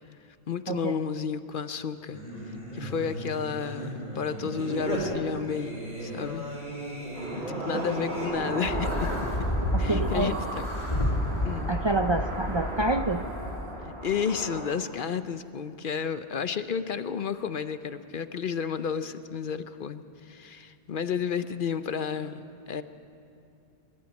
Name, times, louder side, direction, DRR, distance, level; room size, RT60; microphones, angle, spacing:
voice 1, 0.5-2.2 2.7-6.5 7.3-9.1 9.8-10.7 11.4-11.8 13.8-22.8, left 6 dB, 55° left, 11 dB, 0.8 m, -32 dB
Singing, 2.1-8.3, right 1 dB, 55° right, 5.9 m, -36 dB
sound 1, 7.2-14.6, right 1 dB, 70° right, 3.1 m, -36 dB
sound 2, 8.6-13.7, left 1 dB, 35° left, 2.8 m, -30 dB
voice 2, 9.7-10.4 11.7-13.3, right 2 dB, 35° right, 6 dB, 0.5 m, -27 dB
23.0 x 12.5 x 9.3 m, 2.5 s
omnidirectional pair, 1.1 m